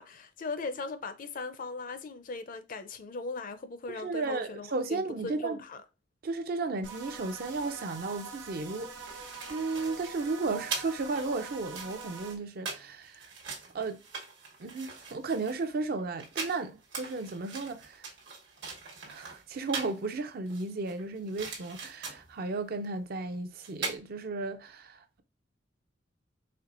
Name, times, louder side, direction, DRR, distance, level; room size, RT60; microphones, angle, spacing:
voice 1, 0.0-5.8, left 3 dB, 50° left, 0.5 m, -39 dB
voice 2, 3.9-5.6 6.2-13.3 13.7-14.0 14.6-18.0 19.1-25.2, right 3 dB, 55° right, 0.5 m, -34 dB
sound 1, 6.8-12.4, right 4 dB, 90° right, 0.9 m, -44 dB
sound 2, 8.8-20.0 20.5-22.4 23.3-23.4 23.6-24.0, right 4 dB, 70° right, 1.2 m, -41 dB
4.4 x 3.3 x 2.5 m
head